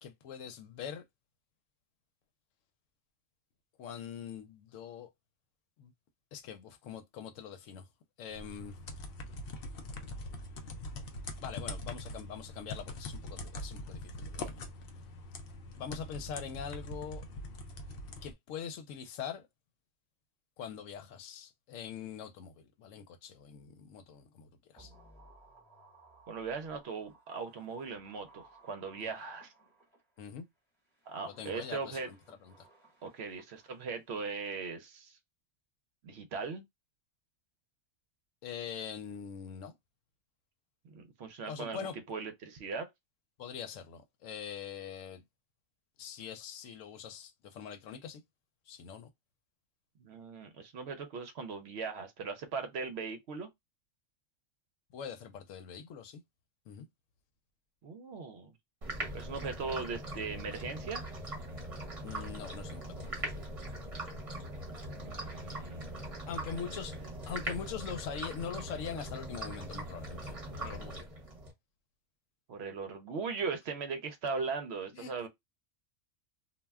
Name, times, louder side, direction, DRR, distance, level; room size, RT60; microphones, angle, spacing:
voice 1, 0.0-1.0 3.8-5.1 5.8-5.9 6.3-7.8 8.2-8.7 11.4-14.6 15.8-17.2 18.2-19.5 20.6-24.9 29.0-29.1 30.2-30.5 31.2-32.5 38.4-39.7 41.5-42.0 43.4-45.2 46.0-48.2 48.7-49.1 54.9-56.2 56.7-56.9 62.0-63.3 66.3-67.0 67.3-70.3 70.6-71.1 74.9-75.1, left 7 dB, 85° left, 1.0 m, -43 dB
sound 1, 8.3-18.3, left 2 dB, 60° left, 0.7 m, -43 dB
sound 2, 24.8-30.2 30.8-34.1 34.4-34.5, right 2 dB, ahead, 0.9 m, -61 dB
voice 2, 26.3-29.5 31.1-32.1 33.0-35.2 36.0-36.6 40.8-42.9 50.0-53.5 57.8-58.5 59.1-61.0 64.9-66.1 66.5-66.7 72.5-75.3, right 4 dB, 65° right, 0.8 m, -39 dB
sound 3, 58.8-71.5, right 1 dB, 30° right, 0.9 m, -41 dB
2.4 x 2.1 x 3.3 m
omnidirectional pair, 1.3 m